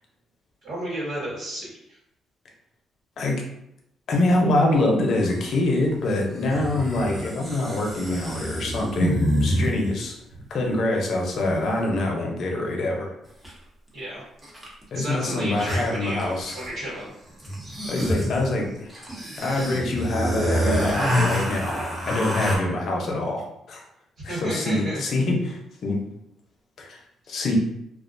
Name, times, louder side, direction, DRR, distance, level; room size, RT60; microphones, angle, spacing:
voice 1, 0.6-2.0 13.9-14.2 14.9-17.1 24.2-25.0, right 1 dB, 70° right, -7 dB, 1.4 m, -32 dB
voice 2, 4.1-10.2 10.5-13.1 14.9-16.6 17.9-18.9 19.4-23.8 24.2-26.0 26.8-27.0 27.3-27.5, left 2 dB, 60° left, 0 dB, 0.6 m, -25 dB
sound 1, 5.2-5.4 6.5-10.0 13.4-13.5 14.4-14.8 15.1-15.2 15.4-16.9 17.4-22.6, equal, 10° right, 0.8 m, -27 dB
2.3 x 2.1 x 2.5 m, 0.80 s
cardioid pair, 90°, 0 cm